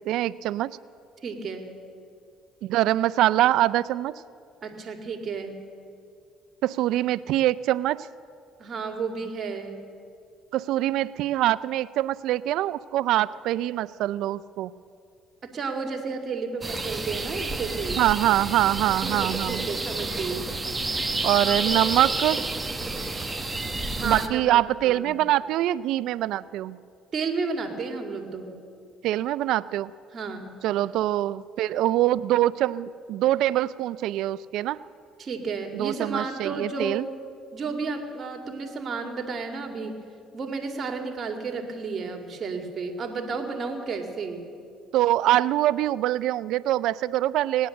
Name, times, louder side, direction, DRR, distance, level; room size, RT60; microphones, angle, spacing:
voice 1, 0.1-0.8 2.6-4.1 6.6-8.1 10.5-14.7 18.0-19.7 21.2-22.4 24.0-26.8 29.0-29.9 30.6-34.8 35.7-37.1 44.9-47.7, right 14 dB, 75° right, 18 dB, 0.3 m, -24 dB
voice 2, 1.2-1.7 4.6-5.6 8.6-9.8 15.4-18.0 19.0-20.5 24.0-25.2 27.1-28.5 30.1-30.5 35.2-37.1 37.5-40.0 40.3-44.5, right 4 dB, 45° right, 4 dB, 2.1 m, -32 dB
sound 1, 16.6-24.3, right 2 dB, 15° right, 1.2 m, -30 dB
18.5 x 10.0 x 7.7 m, 2.4 s
supercardioid pair, 85°, 0 cm